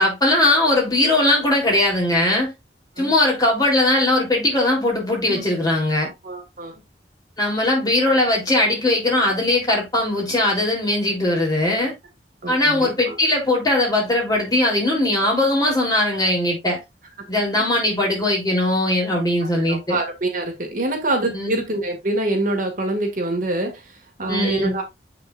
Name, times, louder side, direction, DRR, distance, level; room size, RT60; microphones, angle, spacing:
voice 1, 0.0-2.5 3.0-6.1 7.4-11.9 12.5-16.8 17.3-20.0 21.3-21.6 24.3-24.8, left 1 dB, 20° left, 3.6 m, -20 dB
voice 2, 6.0-6.7 12.4-13.1 17.6-17.7 19.4-24.8, right 2 dB, 50° right, 2.2 m, -25 dB
7.7 x 6.1 x 2.6 m
head